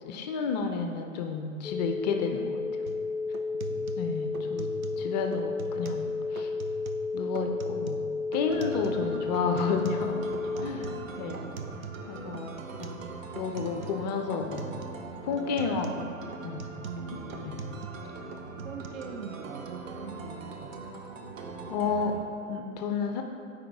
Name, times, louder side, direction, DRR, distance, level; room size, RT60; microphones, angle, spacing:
voice 1, 0.0-2.5 4.0-4.7 5.0-6.5 7.1-8.0 8.3-10.2 10.6-10.9 11.2-11.4 12.1-13.0 13.3-14.7 15.2-16.1 16.4-16.7 17.4-17.6 21.7-22.1 22.5-23.2, left 5 dB, 35° left, 5 dB, 0.4 m, -31 dB
sound 1, 1.6-10.7, left 4 dB, 5° right, 0.8 m, -32 dB
sound 2, 2.9-3.0 3.3-5.1 5.3-6.1 6.4-7.1 7.4-9.1 9.3-12.1 12.3-13.1 13.4-14.1 14.3-15.0 15.3-18.1 18.3-18.9, right 5 dB, 90° right, 0.6 m, -42 dB
voice 2, 3.7-4.1 4.9-5.0 9.0-9.3 10.5-11.6 16.8-17.6 18.6-20.8, right 6 dB, 45° right, 6 dB, 0.6 m, -43 dB
sound 3, 8.5-22.2, right 3 dB, 70° right, 0.9 m, -42 dB
8.4 x 4.9 x 3.5 m, 2.6 s
figure-of-eight pair, 105°, 41 cm